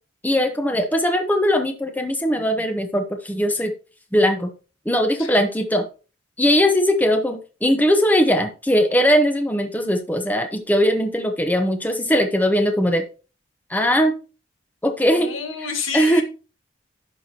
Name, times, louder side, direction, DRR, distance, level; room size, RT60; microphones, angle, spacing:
voice 1, 0.2-3.7 4.1-4.5 4.9-5.9 6.4-13.0 13.7-14.1 14.8-15.3 15.9-16.2, equal, 10° left, 0.8 m, -20 dB
voice 2, 15.1-16.2, left 5 dB, 85° left, 1.7 m, -29 dB
11.0 x 6.1 x 2.9 m
head